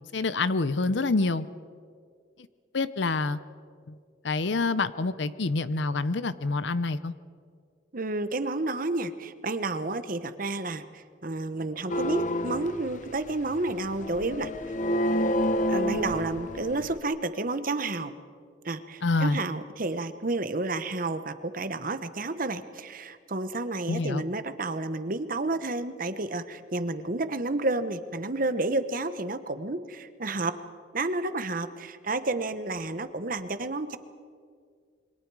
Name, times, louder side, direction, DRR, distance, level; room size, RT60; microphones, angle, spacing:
voice 1, 0.1-1.4 2.7-3.4 3.9-4.0 4.2-7.1 19.0-19.4 23.9-24.2, left 3 dB, 65° left, 14 dB, 0.7 m, -27 dB
voice 2, 7.9-14.5 15.7-18.1 18.6-30.5 30.9-34.0, right 2 dB, 45° right, 10 dB, 1.0 m, -31 dB
sound 1, 11.9-17.0, equal, 40° left, 0.9 m, -29 dB
28.0 x 23.5 x 4.8 m, 2.1 s
head